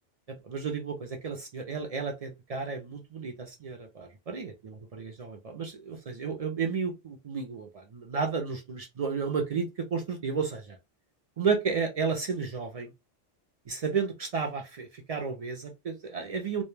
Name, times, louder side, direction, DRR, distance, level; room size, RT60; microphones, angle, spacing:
voice 1, 0.3-10.8 11.4-12.9 13.7-16.6, right 5 dB, 70° right, 0.3 m, -32 dB
2.2 x 2.1 x 3.1 m
omnidirectional pair, 1.2 m